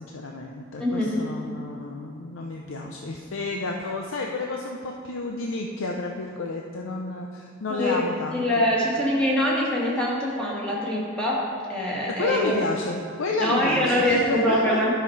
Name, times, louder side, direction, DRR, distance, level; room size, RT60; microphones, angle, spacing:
voice 1, 0.0-8.5 12.2-14.9, left 3 dB, 85° left, 1 dB, 0.6 m, -30 dB
voice 2, 0.8-1.3 7.7-8.0 8.3-11.4 11.7-12.5 13.4-14.9, left 1 dB, 5° left, -6 dB, 1.8 m, -24 dB
11.0 x 5.8 x 4.6 m, 2.5 s
head